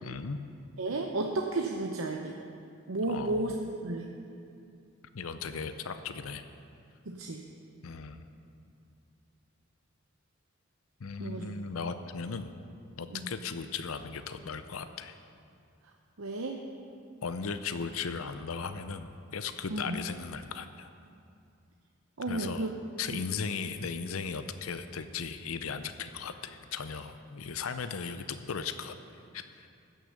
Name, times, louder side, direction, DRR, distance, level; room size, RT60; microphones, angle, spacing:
voice 1, 0.0-0.4 3.1-3.5 5.1-6.4 7.8-8.2 11.0-12.5 13.0-15.2 17.2-20.9 22.3-22.7 23.0-28.9 29.3-29.7, left 5 dB, 85° left, 10 dB, 0.6 m, -37 dB
voice 2, 0.8-2.4 2.9-4.1 7.1-7.4 11.2-11.5 13.1-13.3 16.2-16.6 19.7-20.0 22.2-22.7 23.1-23.2, right 2 dB, 80° right, 2 dB, 0.7 m, -33 dB
15.5 x 6.6 x 6.5 m, 2.5 s
head